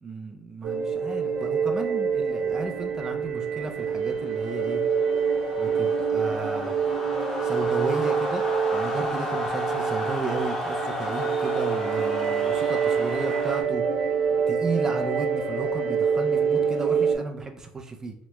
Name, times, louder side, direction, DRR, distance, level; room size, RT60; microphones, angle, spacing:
voice 1, 0.0-4.8 5.6-6.8 7.4-8.4 8.7-13.8 14.5-18.1, right 3 dB, 20° right, 4 dB, 0.4 m, -34 dB
sound 1, 0.6-17.2, right 6 dB, 80° right, 0.8 m, -26 dB
sound 2, 3.7-13.6, left 1 dB, 15° left, 0.8 m, -33 dB
2.9 x 2.2 x 3.0 m, 0.70 s
cardioid pair, 135°, 3 cm